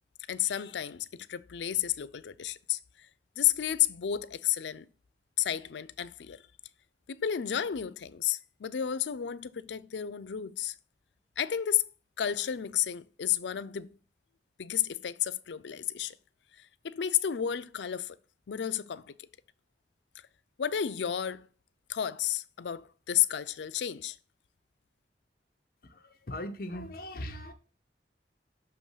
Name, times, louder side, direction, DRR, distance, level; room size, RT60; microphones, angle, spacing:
voice 1, 0.3-3.1 3.4-4.9 5.4-6.4 7.1-10.7 11.4-11.9 12.2-13.9 14.6-16.2 16.6-18.2 18.5-19.1 20.6-21.5 21.9-24.2, left 10 dB, 85° left, 0.4 m, -31 dB
voice 2, 25.8-27.5, left 1 dB, 55° left, 0.9 m, -39 dB
6.8 x 3.0 x 5.5 m
head